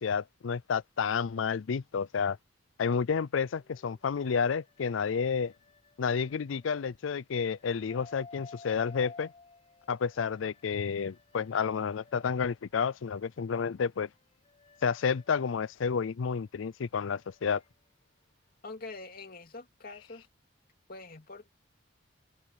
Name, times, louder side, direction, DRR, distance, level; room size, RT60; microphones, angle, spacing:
voice 1, 0.0-2.4 2.8-5.5 6.0-9.3 9.9-14.1 14.8-17.6, left 6 dB, 90° left, 0.5 m, -30 dB
sound 1, 3.5-7.0 7.5-12.7 13.1-18.7, left 3 dB, 35° left, 6.9 m, -56 dB
voice 2, 18.6-20.3 20.9-21.5, left 3 dB, 50° left, 2.8 m, -45 dB
head